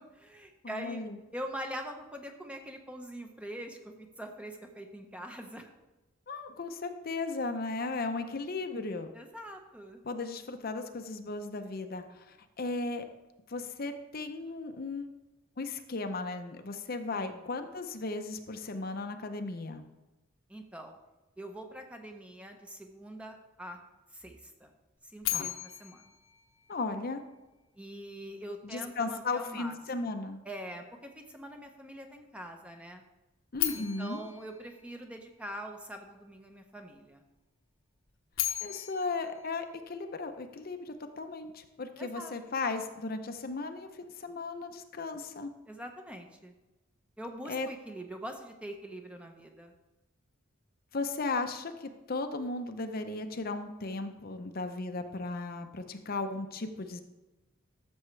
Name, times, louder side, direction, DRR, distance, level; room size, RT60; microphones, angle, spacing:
voice 1, 0.0-1.0 1.3-5.7 9.1-10.0 17.1-17.4 20.5-20.9 21.4-23.8 24.1-24.7 25.0-26.0 27.8-30.1 30.4-33.0 33.7-37.2 42.0-42.3 45.7-46.5 47.2-49.7, equal, 5° right, 4 dB, 0.8 m, -43 dB
voice 2, 0.6-1.2 6.3-9.1 10.0-13.1 13.5-15.1 15.6-19.8 25.3-25.5 26.7-27.2 28.6-30.4 33.5-34.2 38.6-45.5 47.5-47.7 50.9-57.0, left 3 dB, 45° left, 7 dB, 0.7 m, -36 dB
sound 1, 25.2-27.4 33.5-35.7 38.1-40.5, left 13 dB, 80° left, 1.0 m, -37 dB
13.0 x 7.1 x 3.2 m, 1.1 s
head